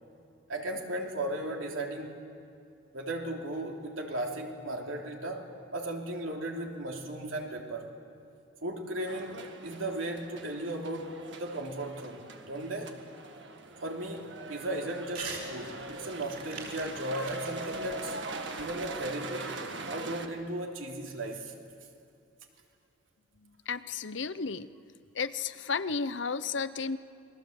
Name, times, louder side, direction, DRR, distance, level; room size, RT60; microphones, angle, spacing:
voice 1, 0.5-2.2 2.9-7.9 8.6-13.0 13.8-18.2 18.6-19.5 19.8-21.5, right 1 dB, 80° right, 1 dB, 3.2 m, -36 dB
sound 1, 9.1-20.3, right 2 dB, 60° right, 1.8 m, -42 dB
Crumpling crinkling / Tearing, 15.1-15.5 15.8-19.1, right 4 dB, 45° right, 5.1 m, -43 dB
voice 2, 23.4-24.7 25.1-27.0, left 5 dB, 65° left, 14 dB, 0.8 m, -33 dB
28.5 x 21.5 x 7.9 m, 2.6 s
head